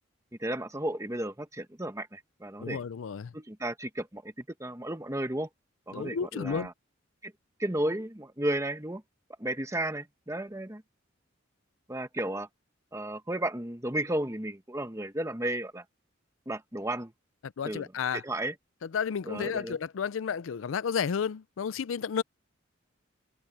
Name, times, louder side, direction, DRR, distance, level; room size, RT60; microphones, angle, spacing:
voice 1, 0.4-2.8 3.3-5.5 5.9-6.7 7.2-7.3 7.6-9.0 9.4-10.8 11.9-12.5 12.9-15.8 16.5-17.1 17.6-17.8 18.1-18.5 19.3-19.7, right 1 dB, 15° right, 1.4 m, -33 dB
voice 2, 2.6-3.3 5.9-6.7 17.4-18.2 18.8-22.2, left 6 dB, 80° left, 0.4 m, -32 dB
head